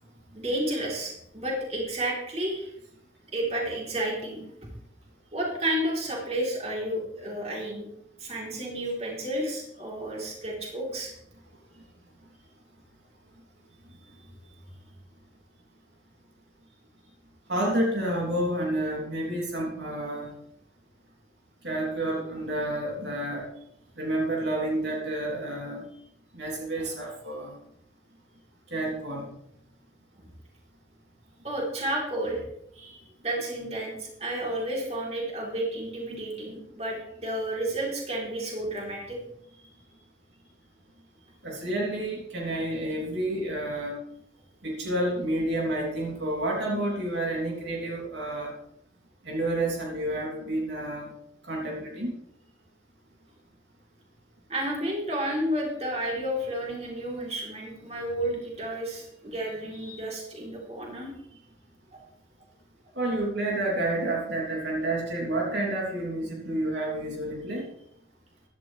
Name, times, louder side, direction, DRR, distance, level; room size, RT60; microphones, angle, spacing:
voice 1, 0.3-2.7 3.3-4.4 5.3-7.9 8.2-11.1 14.2-14.6 26.8-26.9 31.4-32.4 32.7-39.2 54.5-61.1 61.9-62.0, right 1 dB, 35° right, -2 dB, 4.0 m, -31 dB
voice 2, 17.5-20.3 21.6-23.5 24.0-25.8 26.3-27.5 28.7-29.3 41.4-44.0 44.6-48.5 49.2-51.1 51.4-52.1 63.0-67.7, right 1 dB, 70° right, -2 dB, 3.5 m, -29 dB
16.0 x 12.5 x 3.5 m, 0.74 s
head